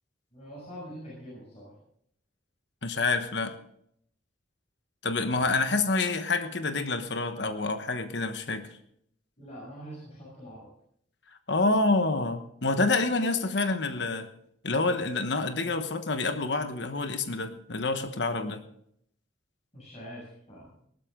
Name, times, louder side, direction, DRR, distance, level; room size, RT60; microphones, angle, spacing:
voice 1, 0.3-1.7 9.4-10.7 19.7-20.7, equal, 35° left, -5 dB, 6.8 m, -44 dB
voice 2, 2.8-3.5 5.0-8.7 11.5-14.3 14.6-18.6, left 3 dB, 65° left, 9 dB, 1.2 m, -27 dB
18.5 x 12.5 x 3.8 m, 0.70 s
head